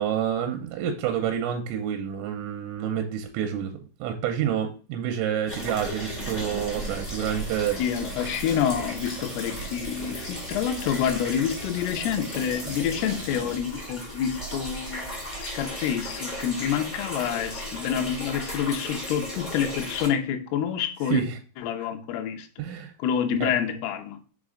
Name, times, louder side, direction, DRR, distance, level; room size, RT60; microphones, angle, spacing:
voice 1, 0.0-3.7 4.0-7.8 21.1-21.4 21.8-21.9 22.6-22.9 23.4-23.5, right 9 dB, 90° right, 3.0 m, -28 dB
sound 1, 5.5-20.1, equal, 20° left, 1.3 m, -35 dB
voice 2, 7.8-21.2 21.6-22.5 23.0-24.2, left 8 dB, 80° left, 2.5 m, -28 dB
6.2 x 4.2 x 3.7 m
omnidirectional pair, 5.2 m